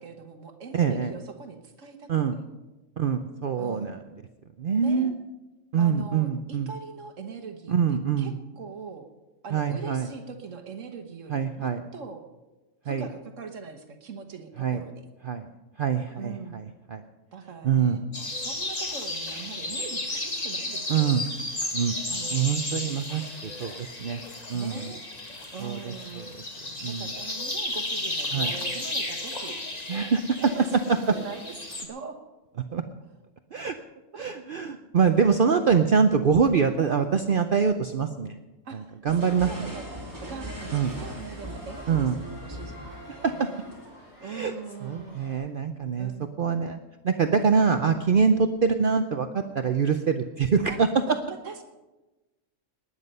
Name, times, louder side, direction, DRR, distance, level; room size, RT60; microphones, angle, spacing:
voice 1, 0.0-2.5 3.6-3.9 4.7-5.1 5.8-7.8 8.2-9.0 9.4-12.2 12.8-15.0 16.1-16.6 17.3-21.1 22.1-22.4 24.5-25.0 25.5-26.2 26.8-29.6 30.4-31.5 31.8-32.2 34.1-34.4 35.4-35.5 38.6-38.9 39.4-39.8 40.2-43.6 44.2-45.2 46.0-46.3 48.3-48.6 50.7-51.6, right 5 dB, 80° right, 6 dB, 1.5 m, -42 dB
voice 2, 0.7-1.1 2.1-2.4 3.0-4.0 4.6-5.1 5.7-6.7 7.7-8.3 9.5-10.1 11.3-11.8 12.9-13.1 14.6-14.8 15.2-15.5 15.8-16.6 16.9-17.0 17.6-18.0 20.9-21.3 21.7-21.9 22.3-24.2 24.5-24.9 25.6-26.3 26.8-27.1 28.3-28.5 29.9-30.5 30.9-31.0 32.7-32.8 33.5-33.7 34.2-38.3 38.7-39.7 40.7-40.9 41.9-42.2 43.2-43.5 44.2-44.5 44.8-46.1 46.4-46.8 47.0-50.9, right 6 dB, 50° right, 7 dB, 0.8 m, -24 dB
sound 1, 18.1-31.8, left 2 dB, 30° left, 1.8 m, -33 dB
sound 2, 39.1-44.0, equal, 15° right, 2.7 m, -40 dB
sound 3, 39.2-45.3, equal, 85° left, 5.7 m, -48 dB
19.5 x 9.8 x 5.5 m, 1.1 s
omnidirectional pair, 1.3 m